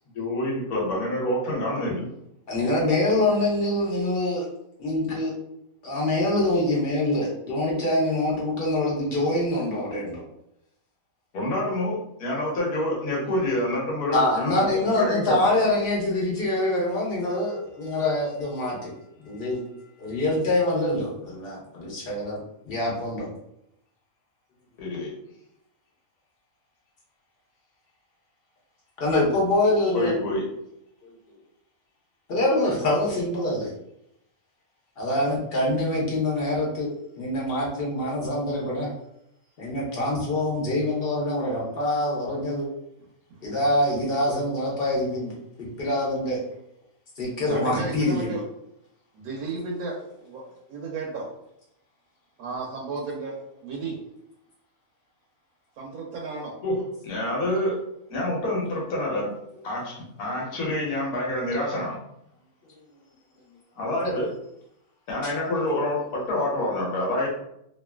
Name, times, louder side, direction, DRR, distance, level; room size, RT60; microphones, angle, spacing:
voice 1, 0.1-2.1 11.3-15.5 24.8-25.1 29.9-30.5 56.6-57.8 58.1-59.3 59.6-62.0 63.8-64.3 65.1-67.3, left 1 dB, 85° left, -3 dB, 1.5 m, -27 dB
voice 2, 2.5-4.4 4.8-5.3 5.8-10.2 14.1-18.9 19.2-19.6 20.0-22.4 22.7-23.3 29.0-30.2 31.0-31.1 32.3-33.7 35.0-36.9 37.2-38.9 39.6-42.7 43.4-45.3 45.6-46.4 47.2-48.4 65.2-65.3, left 1 dB, 45° left, -4 dB, 1.1 m, -25 dB
voice 3, 47.5-48.4 49.1-51.3 52.4-54.0 55.8-56.5, right 3 dB, 80° right, -3 dB, 1.1 m, -33 dB
3.0 x 2.4 x 2.2 m, 0.78 s
omnidirectional pair, 1.6 m